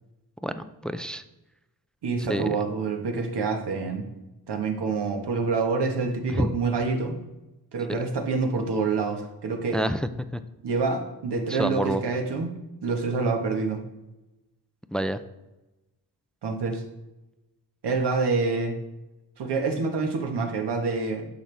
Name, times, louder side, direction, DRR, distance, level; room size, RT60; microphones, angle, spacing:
voice 1, 0.4-1.2 2.2-2.6 6.3-6.5 9.7-10.0 10.3-10.4 11.5-12.0 14.9-15.2, right 1 dB, ahead, 11 dB, 0.4 m, -28 dB
voice 2, 2.0-4.0 4.5-7.2 7.7-9.8 10.6-12.5 12.8-13.8 16.4-16.8 17.8-18.7 19.4-21.3, right 4 dB, 70° right, 4 dB, 1.4 m, -27 dB
10.0 x 6.2 x 3.4 m, 1.0 s
cardioid pair, 85°, 41 cm